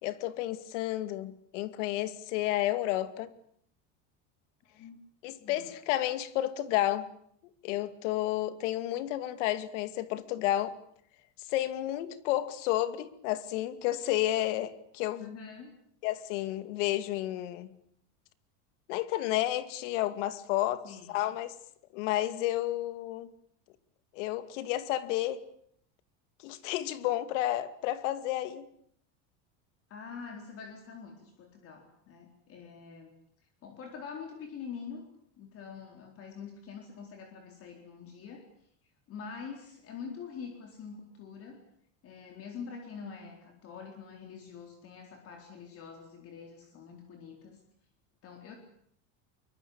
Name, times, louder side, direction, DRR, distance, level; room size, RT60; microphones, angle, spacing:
voice 1, 0.0-3.3 5.2-7.1 7.6-10.8 11.5-15.3 16.0-17.7 18.9-21.5 21.9-23.3 24.1-25.4 26.4-28.7, left 14 dB, 80° left, 2.4 m, -31 dB
voice 2, 4.6-5.0 5.4-5.7 15.2-15.7 20.8-21.1 29.9-33.1 33.6-35.1 35.4-38.5 39.1-41.6 42.0-47.6 48.2-48.6, left 6 dB, 40° left, 4.1 m, -45 dB
24.0 x 23.0 x 8.7 m
cardioid pair, 155°, 36 cm